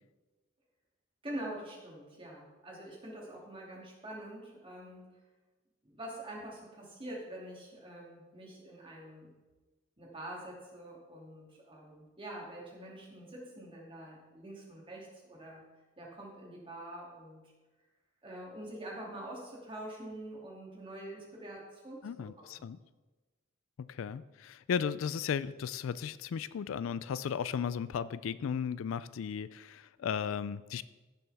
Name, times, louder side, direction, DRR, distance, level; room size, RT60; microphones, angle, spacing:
voice 1, 1.2-5.1 5.8-9.3 10.0-15.6 16.0-17.4 18.2-22.6, right 1 dB, 25° right, -3 dB, 2.6 m, -45 dB
voice 2, 22.0-22.8 23.8-30.8, left 7 dB, 70° left, 16 dB, 0.3 m, -35 dB
15.0 x 7.0 x 3.5 m, 1.2 s
head